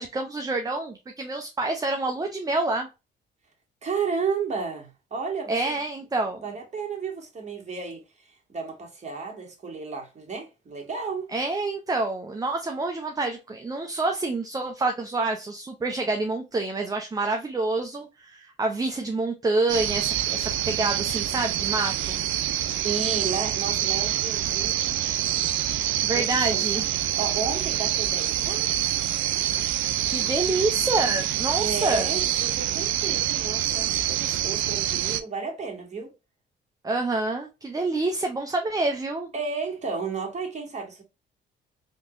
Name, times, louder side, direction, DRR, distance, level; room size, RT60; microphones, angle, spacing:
voice 1, 0.0-2.9 5.5-6.4 11.3-22.2 26.0-26.9 30.1-32.1 36.8-39.3, right 2 dB, 20° right, 0.6 m, -27 dB
voice 2, 3.8-5.8 6.4-11.3 22.8-25.0 26.1-26.8 27.2-29.0 31.6-36.1 39.3-41.0, right 5 dB, 35° right, 1.7 m, -33 dB
sound 1, 19.7-35.2, right 12 dB, 80° right, 0.4 m, -26 dB
3.5 x 3.0 x 2.5 m
cardioid pair, 90°, 20 cm